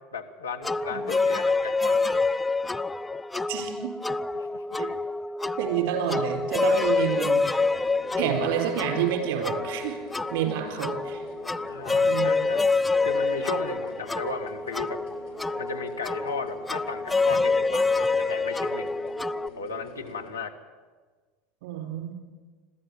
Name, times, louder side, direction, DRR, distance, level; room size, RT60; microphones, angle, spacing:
voice 1, 0.1-2.2 4.3-4.8 11.7-12.7 13.0-15.0 15.6-18.9 19.6-20.5, left 4 dB, 85° left, 5 dB, 1.6 m, -35 dB
sound 1, 0.6-19.5, left 3 dB, 10° left, 0.5 m, -27 dB
voice 2, 3.5-4.0 4.8-4.9 5.6-7.5 8.2-10.0 10.3-11.2 12.0-12.4 21.6-22.1, right 9 dB, 60° right, 3 dB, 4.3 m, -29 dB
sound 2, 6.9-20.3, left 3 dB, 65° left, 5.3 m, -46 dB
21.5 x 14.5 x 8.6 m, 1.4 s
figure-of-eight pair, 75°, 0 cm